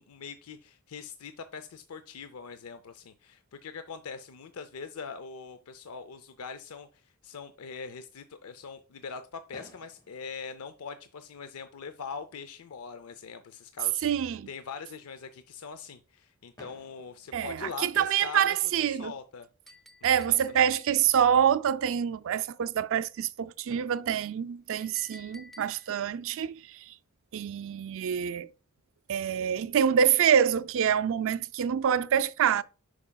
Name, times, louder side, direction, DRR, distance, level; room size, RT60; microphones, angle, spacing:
voice 1, 0.0-18.6 18.9-19.5 20.1-20.7, left 5 dB, 85° left, 0.5 m, -42 dB
Fireworks, 9.5-11.5 12.4-12.5 12.6-12.8 13.2-13.3 16.5-18.4 20.1-20.2 23.2-23.3 23.7-26.0, left 1 dB, 20° left, 1.3 m, -57 dB
voice 2, 14.0-14.5 17.3-19.1 20.0-26.8 27.3-28.5 29.1-32.6, right 8 dB, 65° right, 0.4 m, -26 dB
Chink clink, 19.7-21.2 24.8-26.0, left 2 dB, ahead, 0.7 m, -53 dB
11.0 x 4.9 x 2.3 m
head